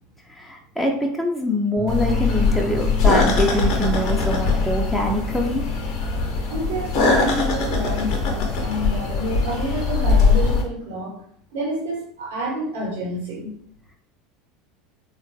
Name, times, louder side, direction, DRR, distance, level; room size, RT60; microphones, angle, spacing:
voice 1, 0.3-5.6, equal, ahead, 0 dB, 0.4 m, -24 dB
Bass guitar, 1.8-8.0, equal, 40° right, 0.9 m, -34 dB
sound 1, 1.9-10.6, left 4 dB, 50° left, 0.6 m, -21 dB
voice 2, 6.5-11.1 11.5-13.5, right 1 dB, 65° right, -4 dB, 1.1 m, -28 dB
3.6 x 2.2 x 2.6 m, 0.64 s
figure-of-eight pair, 75°, 0 cm